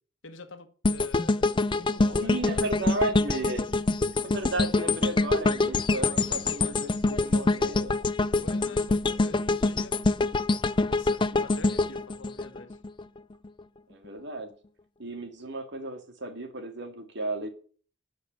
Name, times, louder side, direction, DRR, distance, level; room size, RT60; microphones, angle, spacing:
voice 1, 0.2-3.0 3.3-3.5 8.4-9.9 10.9-12.8, left 2 dB, 65° left, 9 dB, 1.4 m, -45 dB
sound 1, 0.8-13.0 13.4-13.6, left 3 dB, 25° left, 0.4 m, -25 dB
voice 2, 2.2-3.6 4.2-8.0 13.9-14.5 15.0-17.5, right 2 dB, 60° right, 6 dB, 2.1 m, -34 dB
12.0 x 5.2 x 7.6 m, 0.43 s
head